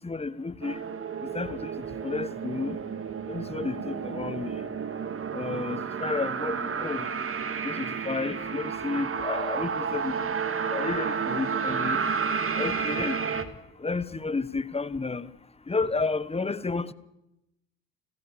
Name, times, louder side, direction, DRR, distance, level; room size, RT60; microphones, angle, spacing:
voice 1, 0.0-0.8 1.2-1.7 2.0-2.8 3.3-4.6 5.3-7.1 7.6-10.3 10.7-12.0 12.6-13.2 13.8-15.3 15.7-16.9, left 4 dB, 15° left, 1.3 m, -31 dB
sound 1, 0.6-13.4, right 6 dB, 35° right, 2.3 m, -31 dB
29.5 x 16.5 x 7.1 m
hypercardioid pair, 65°, 38 cm